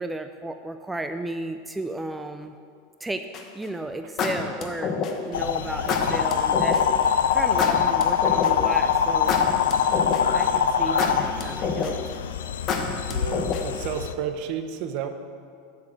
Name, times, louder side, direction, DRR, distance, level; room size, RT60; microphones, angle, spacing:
voice 1, 0.0-2.6 3.0-3.3 3.5-6.8 7.3-9.4 10.3-12.0, right 2 dB, 10° right, 7 dB, 0.4 m, -33 dB
sound 1, 3.3-3.6 4.2-5.3 5.9-6.8 7.6-8.7 9.3-10.4 11.0-12.1 12.7-13.8, left 5 dB, 40° left, 1.0 m, -27 dB
sound 2, 5.3-14.1, left 8 dB, 85° left, 0.4 m, -24 dB
voice 2, 5.9-6.2 13.1-15.1, right 8 dB, 55° right, 8 dB, 0.7 m, -32 dB
7.0 x 5.8 x 7.4 m, 2.3 s
hypercardioid pair, 115°, 0 cm